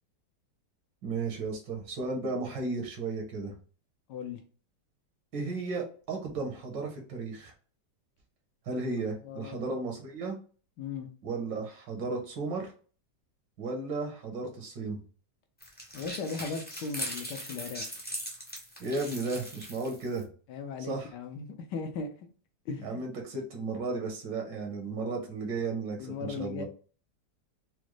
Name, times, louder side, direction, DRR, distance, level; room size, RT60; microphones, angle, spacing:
voice 1, 1.0-3.5 5.3-7.5 8.7-10.4 11.2-12.7 13.6-15.0 18.8-20.3 20.9-21.1 22.8-26.6, right 3 dB, 80° right, 3 dB, 1.7 m, -34 dB
voice 2, 4.1-4.4 9.2-9.7 10.8-11.1 15.9-17.9 20.5-22.1 22.7-23.0 26.0-26.6, left 5 dB, 75° left, 7 dB, 1.2 m, -37 dB
sound 1, 15.6-20.2, equal, 15° left, 0.3 m, -40 dB
5.0 x 2.1 x 3.1 m, 0.39 s
omnidirectional pair, 1.9 m